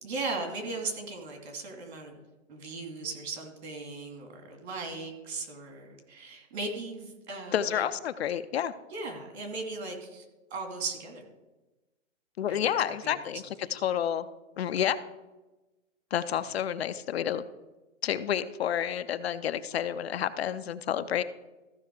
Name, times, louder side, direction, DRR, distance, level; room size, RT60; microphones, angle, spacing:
voice 1, 0.0-2.2 2.5-7.8 8.9-10.2 10.5-11.2 12.5-13.2, right 3 dB, 55° right, 3 dB, 2.5 m, -37 dB
voice 2, 7.5-8.7 12.4-13.4 13.7-14.3 14.6-15.0 16.1-17.4 18.0-21.2, left 9 dB, 55° left, 12 dB, 0.5 m, -29 dB
14.5 x 5.6 x 4.7 m, 1.1 s
hypercardioid pair, 165°, 38 cm